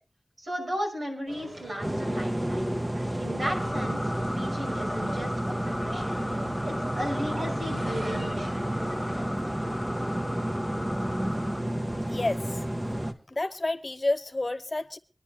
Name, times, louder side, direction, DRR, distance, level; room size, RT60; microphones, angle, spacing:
voice 1, 0.4-2.7 3.2-4.0 4.4-5.3 5.6-6.2 6.6-8.7, equal, 80° right, 1 dB, 6.0 m, -35 dB
sound 1, 1.3-9.2, equal, 55° right, 6.8 m, -40 dB
sound 2, 1.8-13.1, right 1 dB, 20° right, 1.3 m, -31 dB
sound 3, 3.4-11.6, left 1 dB, ahead, 1.8 m, -37 dB
voice 2, 12.1-12.6 13.3-15.0, left 2 dB, 45° left, 12 dB, 1.1 m, -29 dB
25.0 x 10.5 x 2.2 m, 0.35 s
wide cardioid pair, 55°, 0 cm